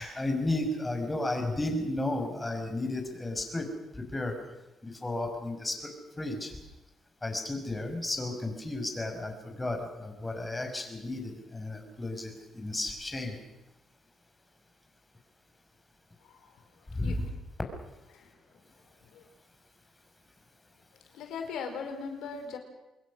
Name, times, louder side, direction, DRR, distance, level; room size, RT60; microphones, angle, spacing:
voice 1, 0.0-4.3 4.8-5.9 6.2-6.5 7.2-13.4 16.9-17.3, left 2 dB, 15° left, 4 dB, 6.1 m, -33 dB
voice 2, 21.1-22.6, left 5 dB, 85° left, 5 dB, 4.8 m, -38 dB
27.0 x 21.5 x 6.5 m, 0.97 s
cardioid pair, 90°, 0 cm